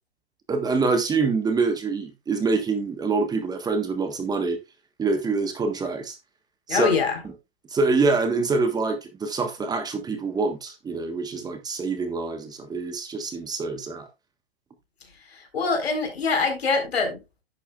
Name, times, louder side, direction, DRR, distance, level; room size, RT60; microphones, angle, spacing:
voice 1, 0.5-4.6 5.0-6.2 6.7-6.9 7.7-14.1, right 4 dB, 10° right, 1.4 m, -25 dB
voice 2, 6.7-7.2 15.5-17.2, left 4 dB, 80° left, 4.4 m, -23 dB
11.0 x 8.4 x 2.4 m
hypercardioid pair, 130°, 31 cm